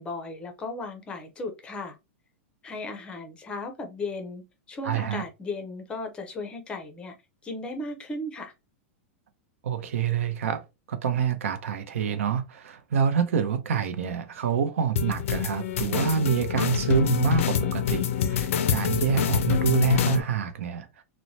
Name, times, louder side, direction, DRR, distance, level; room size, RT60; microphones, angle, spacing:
voice 1, 0.0-2.0 2.6-7.1 7.4-8.5, left 2 dB, 15° left, 0.5 m, -36 dB
voice 2, 4.8-5.2 9.6-10.6 10.9-20.9, right 7 dB, 90° right, 0.6 m, -26 dB
sound 1, 15.0-20.2, left 8 dB, 85° left, 0.4 m, -26 dB
3.0 x 2.1 x 2.6 m
supercardioid pair, 155°, 7 cm